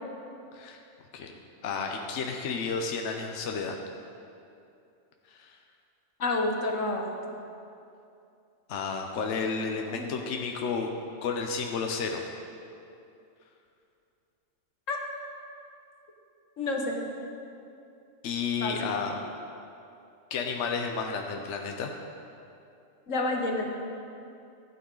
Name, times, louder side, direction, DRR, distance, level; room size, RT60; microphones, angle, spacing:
voice 1, 1.6-3.7 5.4-5.5 8.7-10.9 11.2-12.3 18.2-19.1 20.3-21.9, left 5 dB, 70° left, 2 dB, 1.1 m, -31 dB
voice 2, 6.2-7.1 9.9-10.1 14.9-15.0 16.6-17.0 18.6-18.8 23.1-23.7, left 2 dB, 90° left, 2 dB, 1.5 m, -29 dB
15.5 x 9.3 x 3.9 m, 2.6 s
omnidirectional pair, 1.3 m